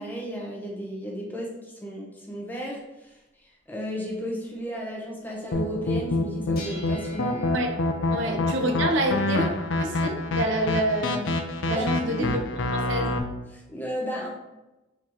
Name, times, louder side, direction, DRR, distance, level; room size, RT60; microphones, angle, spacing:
voice 1, 0.0-3.1 3.7-7.4 8.2-8.3 8.6-8.7 11.7-12.3 13.5-14.3, equal, 10° left, -2 dB, 0.8 m, -34 dB
sound 1, 2.2-2.3 3.2-3.3 3.8-3.9 4.3-4.6 6.6-9.7, left 1 dB, 55° left, 1.3 m, -47 dB
sound 2, 5.5-13.2, left 2 dB, 80° left, 0.5 m, -27 dB
voice 2, 8.1-9.5 9.8-11.3 11.7-12.4 12.7-13.1, right 1 dB, 75° right, 4 dB, 0.6 m, -27 dB
4.6 x 3.7 x 3.0 m, 1.0 s
head